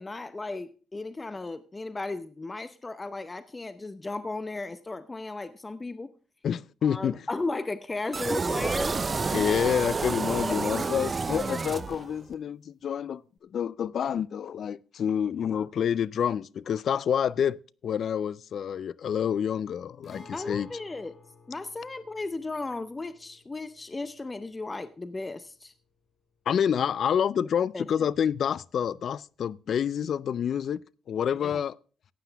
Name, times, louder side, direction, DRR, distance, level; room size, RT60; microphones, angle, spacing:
voice 1, 0.0-6.1 6.8-9.0 9.2-9.3 10.4-10.9 15.5-15.7 20.3-21.1 21.5-25.7 27.7-27.8 31.4-31.6, left 3 dB, 20° left, 0.7 m, -35 dB
voice 2, 6.4-7.3 9.3-13.2 13.5-17.6 17.8-20.7 26.5-30.8 31.1-31.8, left 8 dB, 60° left, 0.4 m, -28 dB
sound 1, 8.1-12.3, right 4 dB, 30° right, 0.6 m, -29 dB
Guitar, 20.0-27.7 27.9-28.0 30.0-30.2, left 3 dB, 40° left, 5.1 m, -56 dB
15.0 x 9.1 x 3.4 m
cardioid pair, 90°, 0 cm